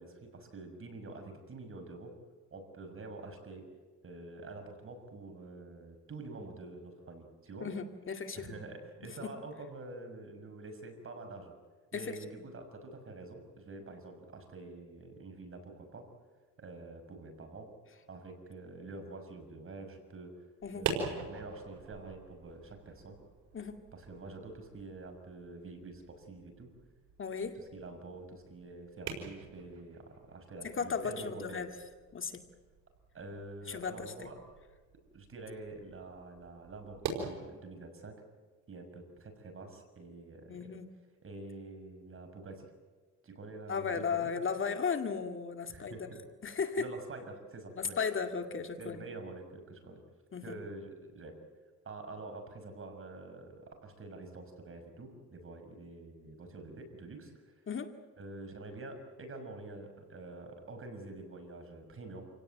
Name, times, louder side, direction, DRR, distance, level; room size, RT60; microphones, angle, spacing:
voice 1, 0.0-2.1 2.5-3.7 4.0-7.7 8.3-11.5 11.9-16.1 16.6-17.7 18.1-20.4 20.7-23.2 23.9-26.7 27.5-31.7 33.1-34.4 35.1-38.2 38.7-40.7 41.2-42.7 43.2-44.3 45.7-46.2 46.8-48.0 48.8-50.0 50.4-51.4 51.8-57.5 58.2-62.2, right 2 dB, 45° right, 6 dB, 6.2 m, -47 dB
voice 2, 7.6-8.6 11.9-12.2 20.6-20.9 23.5-23.8 27.2-27.5 30.7-31.7 32.1-32.4 33.7-34.3 40.5-40.9 43.7-46.0 46.4-46.9 47.8-49.0 50.3-50.4 57.7-57.9, left 5 dB, 40° left, 6 dB, 2.3 m, -35 dB
sound 1, 20.6-37.3, right 5 dB, 85° right, 5.3 m, -45 dB
28.0 x 17.5 x 9.2 m, 1.4 s
cardioid pair, 90°, 30 cm